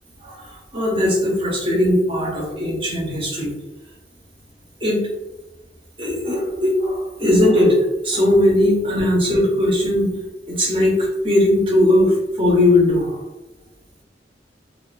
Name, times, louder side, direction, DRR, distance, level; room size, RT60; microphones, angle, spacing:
voice 1, 0.2-3.5 4.8-5.0 6.0-7.8 8.0-10.1 10.5-13.2, left 1 dB, 30° right, -3 dB, 0.7 m, -18 dB
2.4 x 2.2 x 2.4 m, 0.98 s
head